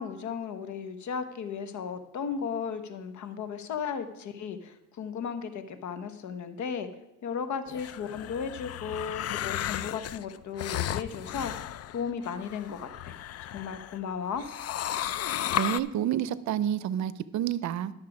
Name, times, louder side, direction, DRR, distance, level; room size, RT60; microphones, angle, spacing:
voice 1, 0.0-6.9 7.2-11.5 11.9-13.1 13.5-14.5, left 6 dB, 70° left, 1.0 m, -35 dB
sound 1, 7.7-14.0 14.4-15.8, left 12 dB, 55° left, 0.4 m, -34 dB
voice 2, 15.6-17.9, right 11 dB, 70° right, 0.6 m, -29 dB
11.5 x 6.5 x 4.8 m
cardioid pair, 90°, 30 cm